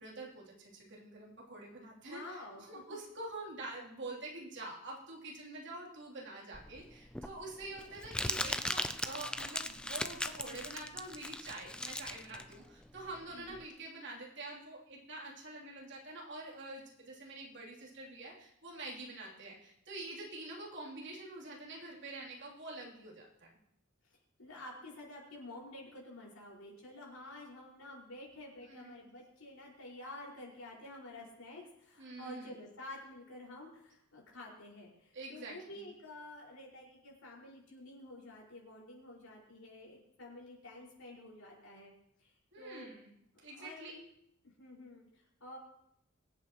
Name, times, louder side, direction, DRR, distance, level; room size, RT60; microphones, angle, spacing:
voice 1, 0.0-23.2 28.6-28.9 32.0-32.5 35.1-35.9 42.5-43.1 43.4-44.0, right 2 dB, 60° right, -3 dB, 3.2 m, -46 dB
voice 2, 2.0-3.0 13.3-13.6 24.4-41.9 42.2-42.9 43.3-44.0 44.4-45.6, left 1 dB, 85° left, -3 dB, 5.2 m, -50 dB
Crumpling crinkling, 6.5-13.6, left 1 dB, 5° left, 0.4 m, -39 dB
23.5 x 8.6 x 3.1 m, 0.76 s
head